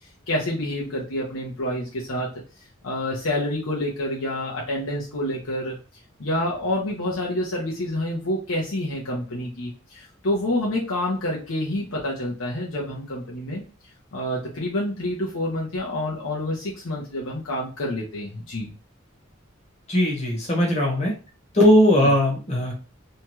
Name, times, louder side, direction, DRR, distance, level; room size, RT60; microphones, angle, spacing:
voice 1, 0.3-2.3 2.8-5.7 6.2-13.6 14.1-18.7 21.9-22.1, left 1 dB, 75° left, -4 dB, 0.8 m, -28 dB
voice 2, 19.9-21.1 21.5-22.7, left 1 dB, 30° left, -1 dB, 1.0 m, -19 dB
2.8 x 2.3 x 2.9 m, 0.34 s
head